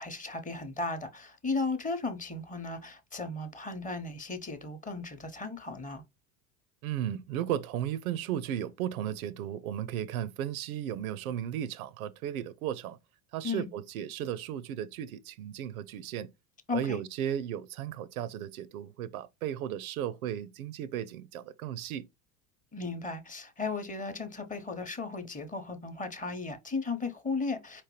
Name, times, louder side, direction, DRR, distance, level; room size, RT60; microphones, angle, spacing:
voice 1, 0.0-6.0 13.4-13.7 16.7-17.0 22.7-27.8, left 3 dB, 20° left, 0.8 m, -35 dB
voice 2, 6.8-13.0 13.3-16.3 16.7-22.1, right 10 dB, 75° right, 0.6 m, -35 dB
4.6 x 2.9 x 3.0 m
hypercardioid pair, 80°, 43 cm